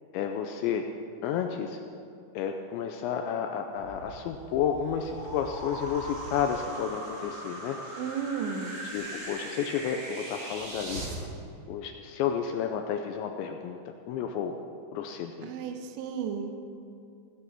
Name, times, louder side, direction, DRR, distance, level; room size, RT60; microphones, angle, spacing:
voice 1, 0.1-0.8 1.2-1.8 2.4-7.8 8.9-11.0 11.7-13.8 14.1-14.5 14.9-15.5, left 8 dB, 80° left, 5 dB, 2.7 m, -31 dB
sound 1, 3.7-11.2, right 1 dB, 50° right, 1.4 m, -40 dB
voice 2, 8.0-8.8 15.4-16.6, right 7 dB, 75° right, 6 dB, 3.0 m, -33 dB
17.0 x 9.9 x 6.1 m, 2.5 s
omnidirectional pair, 5.7 m